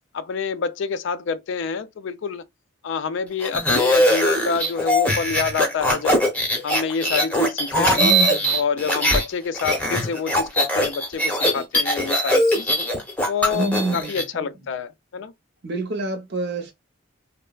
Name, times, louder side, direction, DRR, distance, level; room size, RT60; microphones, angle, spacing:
voice 1, 0.1-2.4 2.8-6.2 6.6-8.1 8.5-12.7 13.3-15.3, left 6 dB, 60° left, 0.3 m, -27 dB
sound 1, 3.4-9.2 9.5-14.2, equal, 5° left, 0.7 m, -21 dB
voice 2, 8.0-8.5 13.5-14.5 15.6-16.7, right 2 dB, 55° right, 0.7 m, -27 dB
3.2 x 2.0 x 2.2 m
head